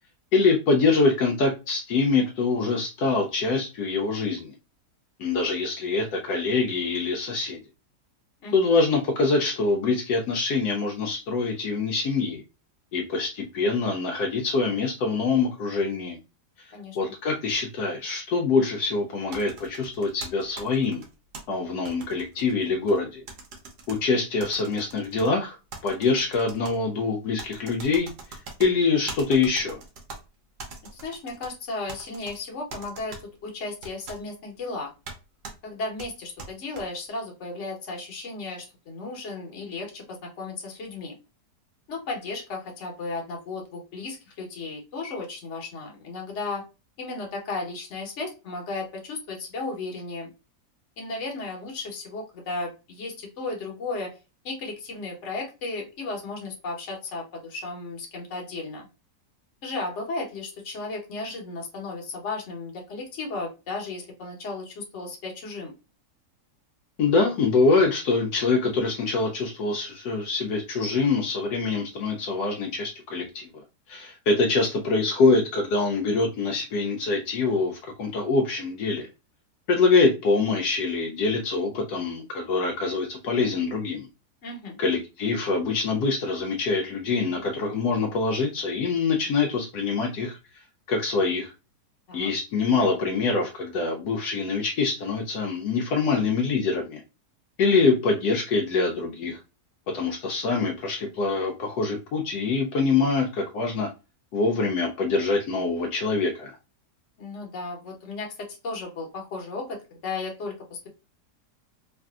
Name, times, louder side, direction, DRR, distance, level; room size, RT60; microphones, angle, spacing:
voice 1, 0.3-4.5 5.2-7.6 8.5-12.4 12.9-16.2 16.6-21.0 21.5-23.2 23.9-25.6 25.8-29.8 67.0-73.5 73.9-79.1 79.7-84.1 84.8-90.4 90.9-91.5 92.1-97.0 97.6-99.4 99.9-103.9 104.3-106.5, left 4 dB, 75° left, 1 dB, 1.1 m, -24 dB
voice 2, 16.7-17.1 30.9-34.9 35.6-41.1 41.9-46.6 47.0-50.3 51.0-54.1 54.4-58.9 59.6-65.7 84.4-84.8 92.1-92.3 107.2-110.9, left 3 dB, 50° left, 0 dB, 1.1 m, -35 dB
sound 1, 19.3-21.4 21.9-23.0 23.3-24.0 24.4-25.3 25.7-26.8 27.4-28.7 29.1-30.2 30.6-31.5 31.9-32.4 32.7-33.2 33.8-34.2 35.1-35.2 35.4-35.6 36.0-36.8, right 3 dB, 80° right, 1.4 m, -41 dB
3.2 x 2.5 x 2.3 m, 0.29 s
omnidirectional pair, 1.7 m